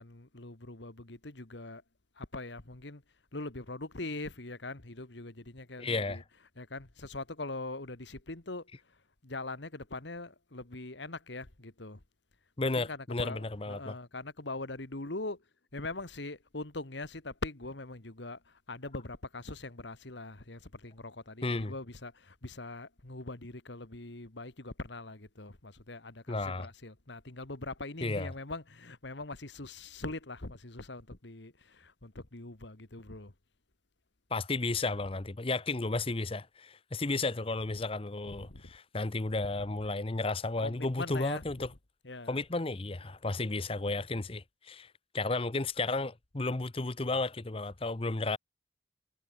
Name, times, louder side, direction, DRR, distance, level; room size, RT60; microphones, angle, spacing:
voice 1, 0.0-1.8 2.2-3.0 3.3-6.2 6.6-8.7 9.2-12.0 12.8-15.4 15.7-33.3 38.4-38.6 40.6-41.4 42.0-42.4, left 2 dB, 65° left, 1.9 m, -42 dB
voice 2, 5.8-6.2 12.6-14.0 21.4-21.7 26.3-26.7 28.0-28.3 34.3-41.7 42.3-48.4, left 3 dB, 30° left, 0.8 m, -33 dB
head